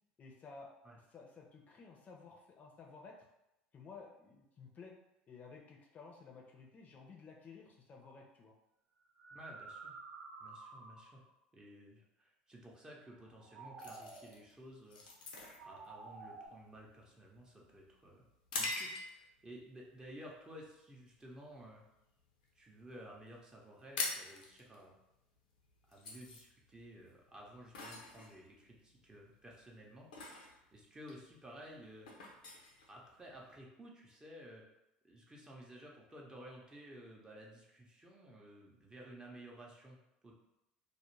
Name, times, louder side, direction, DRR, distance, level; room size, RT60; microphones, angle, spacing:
voice 1, 0.2-0.7 1.1-3.2 3.7-4.9 5.3-8.5, left 4 dB, 35° left, -1 dB, 0.5 m, -54 dB
sound 1, 8.0-8.2 9.0-11.3 13.2-14.4 15.3-16.5, right 3 dB, 80° right, 0.6 m, -51 dB
voice 2, 9.3-10.0 10.4-11.2 11.5-15.3 15.7-18.2 18.5-21.8 22.6-25.0 25.9-30.1 30.7-32.1 32.9-34.7 35.0-40.0 40.2-40.3, equal, 15° right, -2 dB, 0.7 m, -54 dB
sound 2, 13.8-19.4 19.9-20.2 20.7-21.0 21.3-22.5 22.8-22.9 23.1-23.3 23.5-33.5, left 3 dB, 85° left, 0.5 m, -45 dB
2.3 x 2.1 x 3.1 m, 0.88 s
hypercardioid pair, 75°, 4 cm